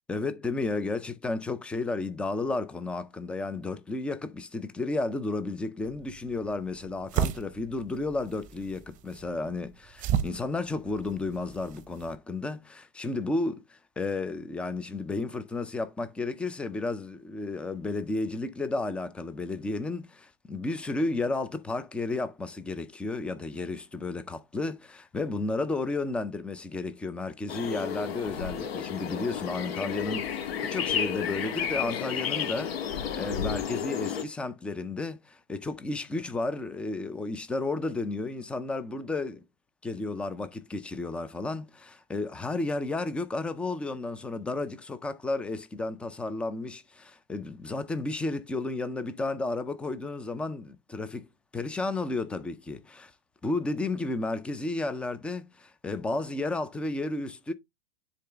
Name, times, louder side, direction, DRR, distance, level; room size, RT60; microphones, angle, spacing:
voice 1, 0.1-39.4 39.8-51.3 51.5-53.1 53.4-57.5, left 3 dB, 5° left, 0.4 m, -32 dB
sound 1, 5.8-12.2, right 9 dB, 25° right, 0.8 m, -35 dB
sound 2, 27.5-34.2, left 8 dB, 70° left, 1.7 m, -32 dB
9.9 x 3.9 x 3.4 m
hypercardioid pair, 130°, 32 cm